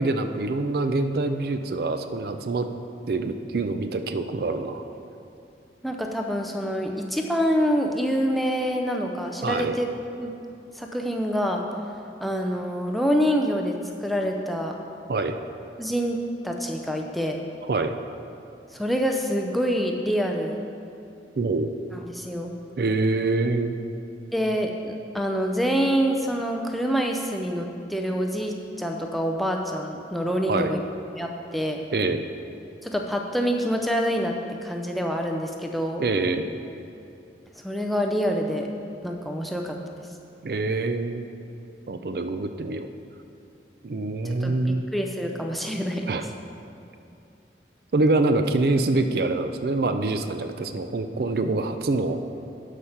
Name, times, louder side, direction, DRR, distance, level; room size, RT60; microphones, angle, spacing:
voice 1, 0.0-2.7 3.1-4.8 9.4-9.7 15.1-15.4 17.7-17.9 21.4-21.7 22.8-23.8 30.5-30.7 31.9-32.2 36.0-36.5 40.4-41.2 41.9-42.9 43.8-44.9 46.1-46.3 47.9-52.2, right 3 dB, 55° right, 8 dB, 0.4 m, -25 dB
voice 2, 5.8-9.9 10.2-10.3 10.8-11.6 12.2-14.8 15.8-16.2 16.4-17.4 18.7-20.6 21.9-22.5 24.3-30.8 31.2-31.8 32.8-34.3 34.6-36.0 37.6-38.7 39.0-39.8 44.2-44.6 44.9-46.1, equal, ahead, 1 dB, 0.5 m, -26 dB
11.5 x 5.0 x 5.8 m, 2.6 s
head